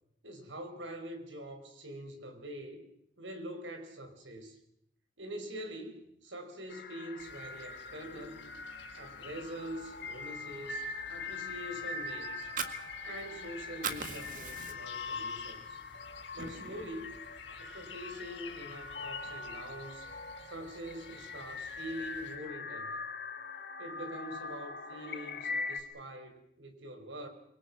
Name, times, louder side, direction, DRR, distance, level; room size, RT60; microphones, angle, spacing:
voice 1, 0.2-2.8 3.2-4.6 5.2-8.5 8.9-12.5 13.0-15.8 16.3-17.2 17.5-20.1 20.4-23.0 23.8-27.3, right 1 dB, 85° right, 6 dB, 4.9 m, -44 dB
sound 1, 6.7-25.8, left 4 dB, 55° left, 1.9 m, -42 dB
sound 2, 7.2-22.4, left 6 dB, 80° left, 5.2 m, -52 dB
Fire, 12.3-13.5 13.7-15.1 15.5-15.6 16.0-17.0, right 5 dB, 45° right, 1.9 m, -39 dB
26.0 x 24.0 x 6.0 m, 0.75 s
head